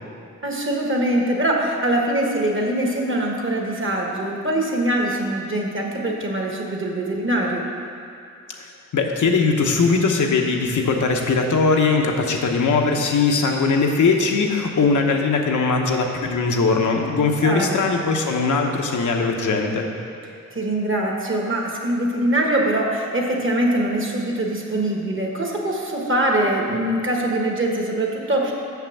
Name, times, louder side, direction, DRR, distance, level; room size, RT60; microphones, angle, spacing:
voice 1, 0.4-7.6 17.4-17.8 20.5-28.5, right 1 dB, 45° right, 0 dB, 1.5 m, -23 dB
voice 2, 8.6-19.9, left 4 dB, 90° left, 2 dB, 0.9 m, -20 dB
6.8 x 5.8 x 7.1 m, 2.5 s
cardioid pair, 75°, 29 cm